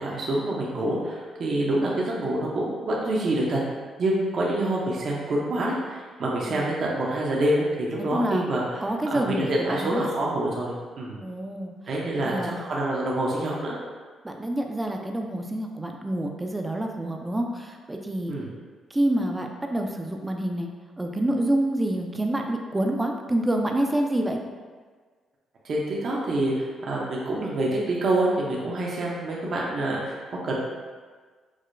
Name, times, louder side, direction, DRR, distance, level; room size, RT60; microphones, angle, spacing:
voice 1, 0.0-3.6 4.0-8.8 9.1-11.2 11.9-13.7 18.3-18.5 25.6-30.5, right 1 dB, 55° right, -4 dB, 0.6 m, -26 dB
voice 2, 8.1-8.4 8.8-10.0 11.2-11.7 12.2-12.5 14.2-18.3 18.9-20.7 21.0-24.4, right 1 dB, 15° right, 2 dB, 0.4 m, -27 dB
4.7 x 2.1 x 2.5 m, 1.5 s
cardioid pair, 90°, 0 cm